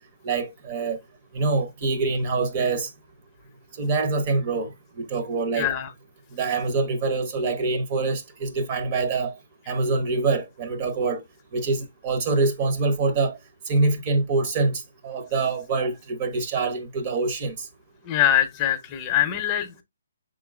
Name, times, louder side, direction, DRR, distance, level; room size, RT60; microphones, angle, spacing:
voice 1, 0.2-1.0 1.3-2.9 3.8-4.7 5.0-5.7 6.3-9.4 9.7-11.2 11.5-13.3 13.7-17.6, right 3 dB, 35° right, 1.0 m, -25 dB
voice 2, 5.6-5.9 18.1-19.8, left 11 dB, 25° left, 0.7 m, -23 dB
5.9 x 3.7 x 2.3 m
figure-of-eight pair, 140°, 0 cm